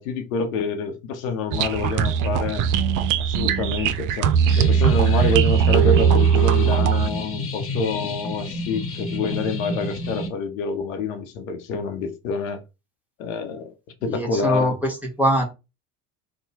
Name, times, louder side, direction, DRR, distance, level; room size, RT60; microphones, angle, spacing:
voice 1, 0.0-2.6 3.2-12.6 13.2-13.7 14.0-14.7, left 4 dB, 80° left, 0.8 m, -27 dB
sound 1, 1.5-7.1, right 7 dB, 50° right, 0.5 m, -19 dB
sound 2, 4.5-10.3, left 2 dB, 35° left, 1.0 m, -30 dB
voice 2, 14.0-15.4, equal, 5° right, 1.1 m, -22 dB
3.0 x 2.2 x 4.0 m
hypercardioid pair, 75°, 39 cm